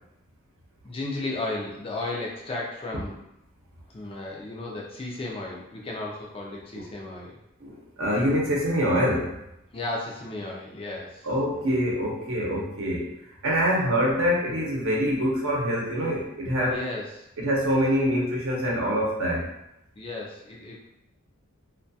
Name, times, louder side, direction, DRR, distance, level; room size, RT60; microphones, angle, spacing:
voice 1, 0.8-3.2 3.9-7.4 9.7-11.3 16.6-17.3 20.0-20.9, left 2 dB, 25° left, -2 dB, 0.4 m, -34 dB
voice 2, 7.6-9.4 11.2-13.1 13.4-16.8 17.4-19.5, equal, 65° right, -3 dB, 0.7 m, -25 dB
2.2 x 2.2 x 2.6 m, 0.84 s
head